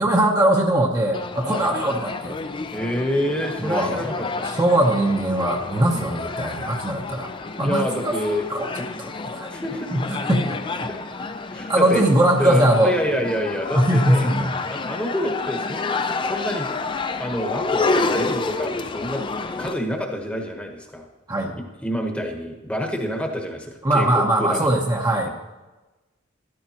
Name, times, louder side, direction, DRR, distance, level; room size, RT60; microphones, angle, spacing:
voice 1, 0.0-2.3 3.6-4.1 4.4-7.3 7.6-8.1 8.5-8.7 9.0-9.5 9.9-10.9 11.7-12.9 13.7-14.5 21.3-21.5 23.8-25.3, right 1 dB, 20° right, 0 dB, 0.8 m, -21 dB
sound 1, 1.1-19.7, left 3 dB, 25° left, 0.4 m, -29 dB
voice 2, 1.5-1.8 2.7-4.5 5.9-6.1 7.6-8.5 8.8-8.9 9.5-9.9 10.9-11.0 11.5-12.0 12.4-14.3 14.7-16.7 17.2-19.3 19.6-21.1 21.6-24.8 25.2-25.3, equal, 5° left, 2 dB, 1.1 m, -28 dB
13.0 x 11.5 x 2.9 m, 1.1 s
head